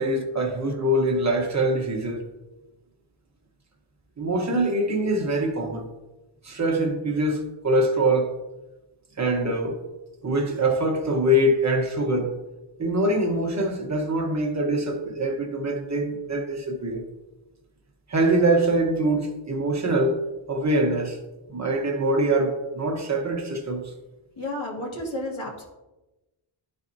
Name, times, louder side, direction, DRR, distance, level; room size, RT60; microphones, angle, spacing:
voice 1, 0.0-2.2 4.2-5.9 6.4-8.3 9.2-9.8 10.2-12.4 12.8-17.0 18.1-20.2 20.5-21.2 21.5-23.9, right 1 dB, 35° right, 0.9 m, -24 dB
voice 2, 24.4-25.6, left 1 dB, 65° left, 1.9 m, -32 dB
11.5 x 4.2 x 2.6 m
wide cardioid pair, 160°, 50 cm